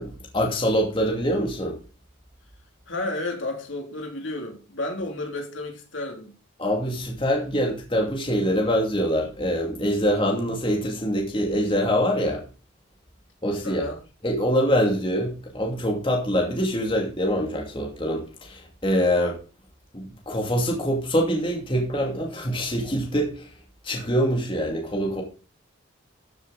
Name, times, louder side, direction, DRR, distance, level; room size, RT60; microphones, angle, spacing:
voice 1, 0.0-1.8 6.6-12.4 13.4-13.8 14.2-19.4 19.9-23.5 23.8-25.2, equal, 25° left, 2.6 m, -24 dB
voice 2, 2.9-6.4 13.6-14.0, left 2 dB, 70° left, 3.1 m, -32 dB
14.0 x 7.2 x 4.1 m
head